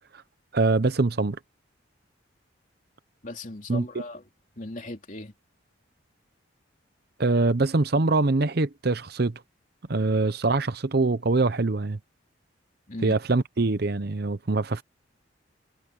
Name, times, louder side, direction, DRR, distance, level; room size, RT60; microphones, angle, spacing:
voice 1, 0.5-1.4 3.7-3.8 7.2-9.4 9.9-12.0 13.0-14.8, right 3 dB, 50° right, 0.8 m, -23 dB
voice 2, 3.2-4.2 4.6-5.3 12.9-13.2, left 2 dB, 40° left, 3.0 m, -37 dB
head